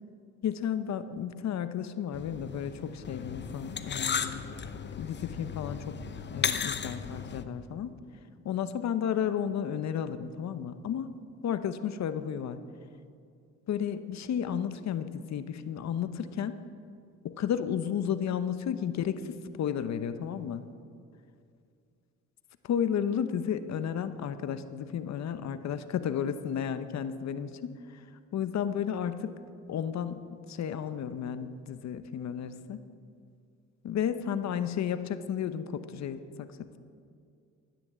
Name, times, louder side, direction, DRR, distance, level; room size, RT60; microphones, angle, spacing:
voice 1, 0.4-4.4 5.0-6.0 6.3-8.0 8.4-12.6 13.7-16.6 17.2-20.7 22.6-28.0 28.3-29.3 29.7-30.2 30.5-32.8 33.8-36.5, left 8 dB, 65° left, 11 dB, 0.9 m, -33 dB
sound 1, 2.1-7.4, left 6 dB, 35° left, 0.9 m, -35 dB
13.5 x 9.9 x 7.8 m, 2.4 s
cardioid pair, 90°, 30 cm